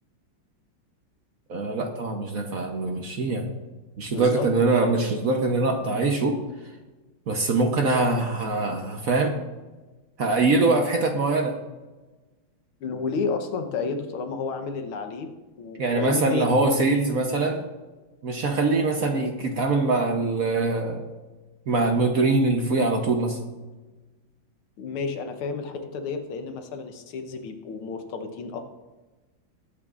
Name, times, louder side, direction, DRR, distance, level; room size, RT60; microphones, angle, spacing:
voice 1, 1.5-3.5 4.0-6.4 7.3-9.3 10.2-11.6 15.8-17.6 18.2-21.0 21.7-23.4, right 3 dB, 55° right, 3 dB, 1.1 m, -23 dB
voice 2, 4.1-4.5 12.8-15.3 15.6-16.6 19.0-19.1 24.8-28.6, left 4 dB, 85° left, 6 dB, 1.9 m, -31 dB
20.0 x 8.7 x 2.5 m, 1.2 s
omnidirectional pair, 2.3 m